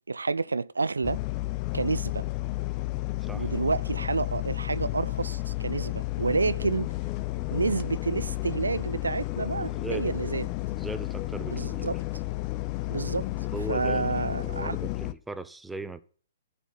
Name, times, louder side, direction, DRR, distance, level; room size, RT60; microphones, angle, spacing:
voice 1, 0.1-1.2 1.7-2.2 3.3-6.9 7.5-10.5 11.5-12.0 12.9-13.3 13.7-14.8, right 4 dB, 90° right, 0.4 m, -29 dB
sound 1, 1.0-15.1, left 19 dB, 35° left, 0.6 m, -32 dB
voice 2, 9.6-10.2 10.8-11.9 13.5-16.0, right 2 dB, 5° right, 0.7 m, -38 dB
11.0 x 5.3 x 5.9 m
hypercardioid pair, 130°, 0 cm